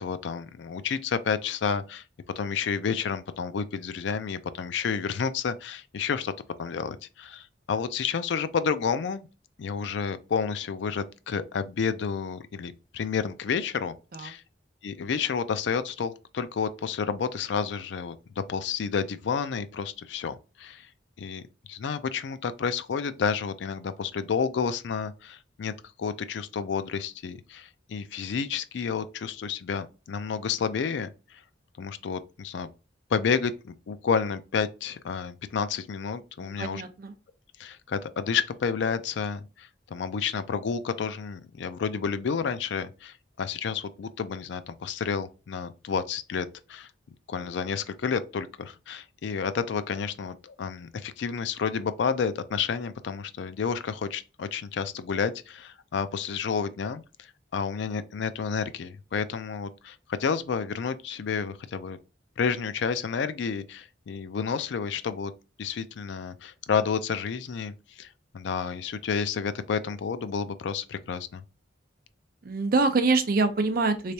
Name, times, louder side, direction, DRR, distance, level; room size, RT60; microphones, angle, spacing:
voice 1, 0.0-2.0 2.4-6.3 6.6-9.3 9.6-14.4 14.8-20.9 21.2-21.4 21.7-25.7 26.0-31.4 31.8-32.7 33.1-36.8 37.6-46.9 47.3-62.0 62.4-65.3 65.6-71.4, left 6 dB, 70° left, 0.4 m, -30 dB
voice 2, 36.4-37.1 72.4-74.1, right 3 dB, 50° right, 0.5 m, -25 dB
3.3 x 3.2 x 2.7 m
head